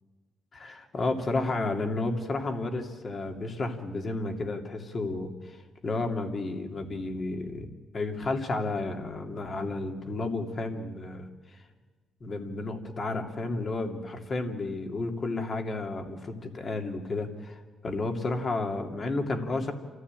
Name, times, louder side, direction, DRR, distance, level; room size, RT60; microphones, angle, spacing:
voice 1, 0.5-7.7 7.9-11.6 12.2-19.7, left 2 dB, 40° left, 4 dB, 2.6 m, -32 dB
28.0 x 14.5 x 9.0 m, 1.4 s
cardioid pair, 90°, 0 cm